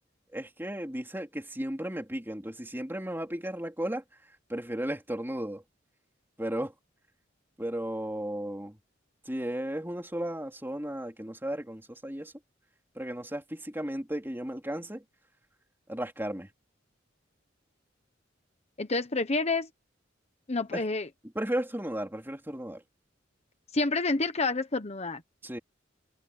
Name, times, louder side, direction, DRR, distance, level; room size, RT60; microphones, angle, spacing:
voice 1, 0.3-4.0 4.5-5.6 6.4-6.7 7.6-8.8 9.3-12.3 13.0-15.0 15.9-16.5 20.7-20.8 21.4-22.8 25.4-25.6, right 1 dB, 10° right, 3.8 m, -34 dB
voice 2, 18.8-19.7 20.5-21.1 23.7-25.2, left 3 dB, 35° left, 1.1 m, -28 dB
head